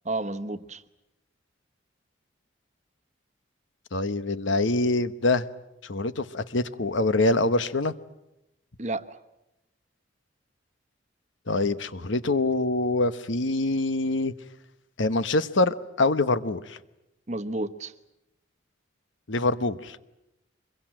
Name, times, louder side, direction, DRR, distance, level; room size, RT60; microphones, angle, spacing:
voice 1, 0.0-0.8 8.8-9.2 17.3-17.9, right 2 dB, 35° right, 9 dB, 1.0 m, -31 dB
voice 2, 3.9-5.5 5.8-7.9 11.5-14.3 15.0-16.8 19.3-20.0, left 2 dB, 75° left, 13 dB, 1.1 m, -25 dB
25.0 x 22.5 x 9.0 m, 0.91 s
head